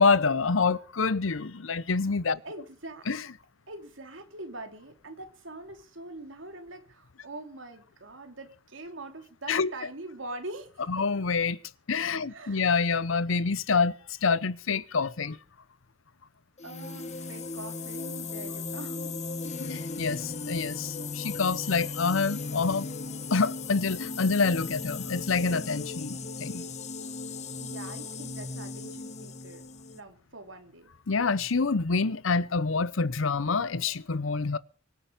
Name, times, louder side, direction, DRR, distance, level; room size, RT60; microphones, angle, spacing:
voice 1, 0.0-2.4 3.1-3.2 9.5-9.7 10.9-11.6 11.9-13.9 14.2-15.4 19.6-22.9 23.3-26.7 31.1-34.6, left 4 dB, 80° left, 0.8 m, -27 dB
voice 2, 2.4-3.1 3.7-11.1 11.9-12.0 12.3-12.8 16.6-19.2 19.6-19.8 27.6-29.6 29.9-30.9, right 2 dB, 70° right, 2.8 m, -43 dB
sound 1, 16.6-30.0, left 4 dB, 35° left, 1.1 m, -37 dB
24.5 x 8.7 x 5.2 m
head